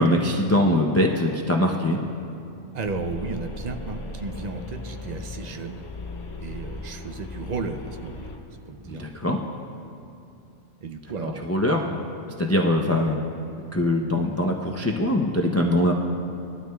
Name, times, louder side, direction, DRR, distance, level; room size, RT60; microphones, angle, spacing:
voice 1, 0.0-2.0 8.9-9.4 11.2-12.0 12.4-13.2 13.7-15.9, left 1 dB, 25° left, 0 dB, 0.3 m, -22 dB
voice 2, 2.7-5.8 6.4-8.3 8.7-9.1 10.8-11.5, right 4 dB, 50° right, 6 dB, 0.5 m, -33 dB
sound 1, 2.8-8.4, left 2 dB, 85° left, 1.5 m, -37 dB
19.5 x 12.5 x 2.3 m, 2.6 s
omnidirectional pair, 1.2 m